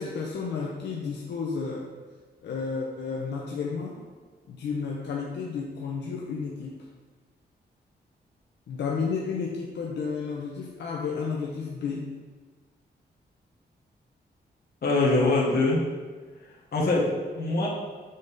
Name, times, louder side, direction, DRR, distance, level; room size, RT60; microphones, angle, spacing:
voice 1, 0.0-1.9 2.4-4.1 4.5-6.9 8.7-12.1, left 5 dB, 90° left, -1 dB, 0.6 m, -32 dB
voice 2, 14.8-15.8 16.7-17.7, left 2 dB, 60° left, -5 dB, 1.6 m, -23 dB
7.5 x 3.9 x 3.6 m, 1.4 s
wide cardioid pair, 130°, 18 cm